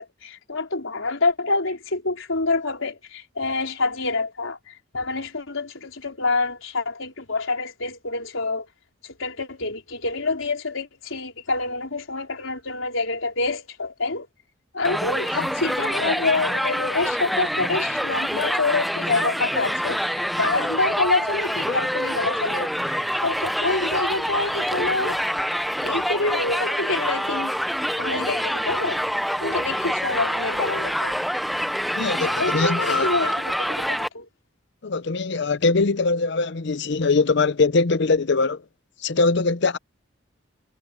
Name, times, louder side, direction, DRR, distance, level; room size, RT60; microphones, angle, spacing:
voice 1, 0.0-8.7 9.0-14.3 14.7-25.2 25.8-27.6 28.0-29.0 29.4-31.1 32.1-34.3, left 3 dB, 90° left, 4.1 m, -27 dB
Crowd, 14.8-34.1, equal, ahead, 0.6 m, -26 dB
voice 2, 31.9-33.1 34.8-38.6 39.0-39.8, left 3 dB, 60° left, 0.7 m, -22 dB
head